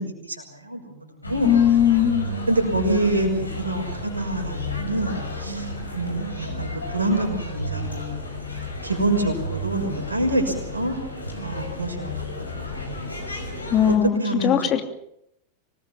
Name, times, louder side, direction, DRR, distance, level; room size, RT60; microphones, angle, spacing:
voice 1, 0.0-1.5 2.5-8.2 8.8-10.9 11.4-12.3 12.6-13.2 13.9-14.5, right 1 dB, 80° right, 5 dB, 6.0 m, -26 dB
sound 1, 1.2-14.0, left 1 dB, 80° left, 5.7 m, -32 dB
voice 2, 1.4-2.3 13.7-14.8, left 9 dB, 30° left, 6 dB, 2.9 m, -19 dB
25.5 x 20.0 x 7.4 m, 0.75 s
figure-of-eight pair, 90°, 0 cm